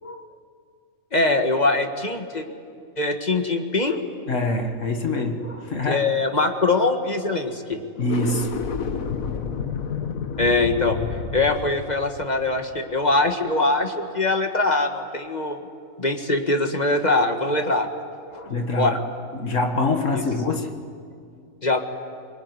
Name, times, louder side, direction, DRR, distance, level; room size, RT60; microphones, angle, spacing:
voice 1, 1.1-2.4 3.0-4.0 5.9-7.8 10.4-11.0 11.3-15.6 16.0-17.9 18.7-19.0 20.1-20.2 21.6-21.8, left 2 dB, 30° left, 5 dB, 1.8 m, -22 dB
voice 2, 4.3-6.0 8.0-8.6 18.3-19.0 19.3-20.8, left 2 dB, 65° left, 4 dB, 2.0 m, -25 dB
sound 1, 8.0-13.3, left 6 dB, 85° left, 1.7 m, -30 dB
24.0 x 22.5 x 9.8 m, 2.3 s
omnidirectional pair, 1.4 m